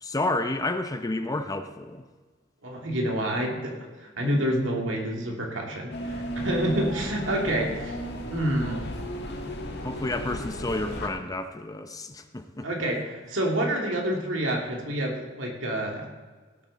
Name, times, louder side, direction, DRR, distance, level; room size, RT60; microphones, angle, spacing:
voice 1, 0.0-2.0 9.8-12.7, left 2 dB, 20° left, 8 dB, 0.6 m, -30 dB
voice 2, 2.6-7.9 8.3-8.8 12.6-16.1, right 1 dB, 75° right, -1 dB, 2.7 m, -28 dB
sound 1, 5.9-11.1, equal, 60° left, 1.8 m, -34 dB
17.5 x 8.7 x 4.2 m, 1.4 s
head